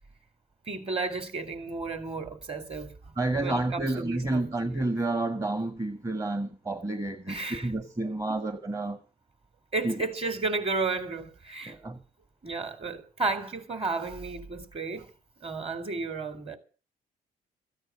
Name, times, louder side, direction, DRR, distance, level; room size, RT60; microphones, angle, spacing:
voice 1, 0.7-2.9 3.4-4.5 7.3-7.7 9.7-11.8 12.4-15.1 15.4-16.6, right 3 dB, 35° right, 3.6 m, -33 dB
voice 2, 3.2-9.0 9.8-9.9 11.6-12.0, right 2 dB, 20° right, 1.5 m, -30 dB
14.5 x 9.0 x 8.4 m
supercardioid pair, 75°, 17 cm